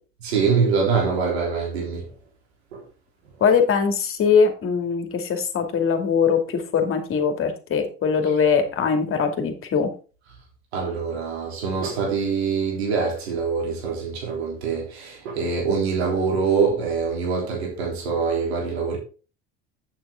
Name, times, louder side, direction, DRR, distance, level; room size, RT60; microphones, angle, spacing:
voice 1, 0.2-2.1 2.7-2.8 10.7-19.0, right 5 dB, 85° right, 3.6 m, -24 dB
voice 2, 3.4-9.9, left 6 dB, 40° left, 2.5 m, -21 dB
8.6 x 7.2 x 3.7 m
hypercardioid pair, 75°, 31 cm